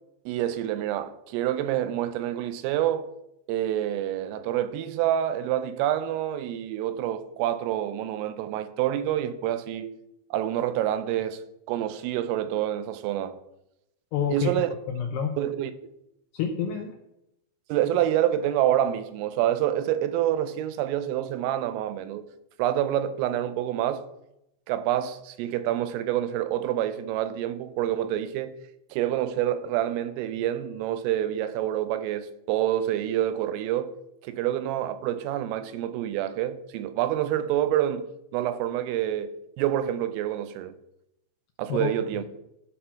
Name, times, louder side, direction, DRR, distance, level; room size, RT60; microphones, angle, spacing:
voice 1, 0.3-3.1 3.5-10.0 10.3-11.4 11.7-13.4 14.3-14.7 15.4-15.7 17.7-22.3 22.6-24.1 24.7-28.6 28.9-34.0 34.2-38.1 38.3-39.3 39.6-40.7 41.6-42.2, right 11 dB, 85° right, 3.3 m, -27 dB
voice 2, 14.1-14.5 14.9-15.4 16.3-17.0 41.7-42.3, left 7 dB, 80° left, 2.4 m, -28 dB
12.5 x 4.5 x 5.8 m
omnidirectional pair, 5.8 m